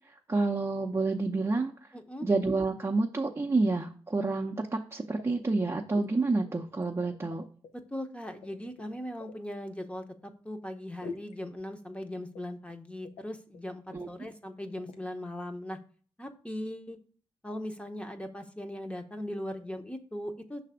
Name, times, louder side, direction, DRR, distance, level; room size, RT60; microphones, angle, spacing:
voice 1, 0.3-1.7 2.2-7.4 13.9-14.1, right 3 dB, 25° right, 1 dB, 0.6 m, -28 dB
voice 2, 1.9-2.3 7.9-15.8 16.2-17.0 17.4-20.6, left 1 dB, 10° left, 6 dB, 0.9 m, -39 dB
sound 1, 5.2-5.6 5.9-6.1 6.5-7.7 8.3-9.4 11.0-11.4 12.4-12.8 13.0-13.2 13.5-13.6 13.9-14.1 14.8-15.0, left 3 dB, 90° left, 0.7 m, -45 dB
5.7 x 3.4 x 5.0 m, 0.42 s
cardioid pair, 55°, 11 cm